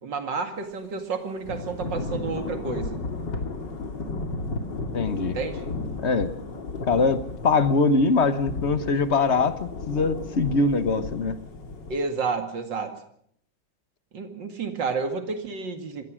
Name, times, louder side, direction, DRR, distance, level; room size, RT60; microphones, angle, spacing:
voice 1, 0.0-3.0 5.2-5.6 11.9-12.9 14.1-16.0, right 4 dB, 70° right, 7 dB, 2.9 m, -30 dB
Thunder / Rain, 1.4-12.0, left 3 dB, 70° left, 3.1 m, -34 dB
voice 2, 4.9-5.4 6.0-6.3 6.9-11.3, left 4 dB, 40° left, 12 dB, 1.2 m, -22 dB
24.5 x 18.0 x 6.2 m, 0.67 s
omnidirectional pair, 2.0 m